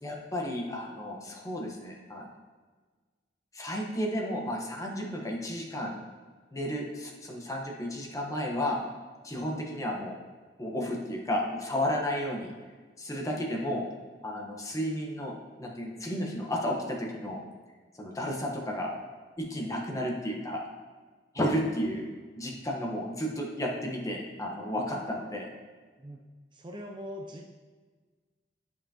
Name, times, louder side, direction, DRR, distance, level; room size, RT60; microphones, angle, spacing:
voice 1, 0.0-2.3 3.5-5.9 6.5-8.8 9.2-10.1 10.6-12.5 13.0-13.8 14.2-15.3 15.6-17.4 18.0-18.9 19.4-20.6 21.3-22.1 22.4-25.5, equal, 20° left, -1 dB, 1.0 m, -32 dB
voice 2, 26.5-27.5, equal, 25° right, 2 dB, 0.5 m, -42 dB
9.6 x 5.6 x 2.8 m, 1.4 s
head